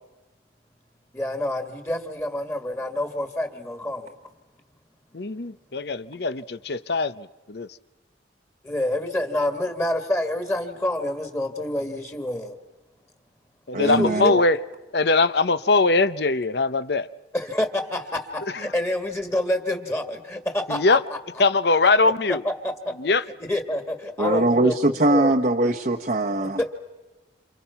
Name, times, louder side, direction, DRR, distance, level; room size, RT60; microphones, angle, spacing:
voice 1, 1.1-4.1 8.6-12.5 13.8-14.4 17.3-21.2 22.0-22.1 22.4-22.9 23.5-25.3, left 1 dB, 15° left, 2.0 m, -27 dB
voice 2, 5.1-7.7 13.7-14.6 14.9-17.1 20.7-21.0 21.4-22.4 23.0-23.2, left 3 dB, 60° left, 0.8 m, -21 dB
voice 3, 13.7-14.3 24.2-26.6, right 2 dB, 45° right, 1.1 m, -21 dB
28.5 x 28.5 x 5.8 m
head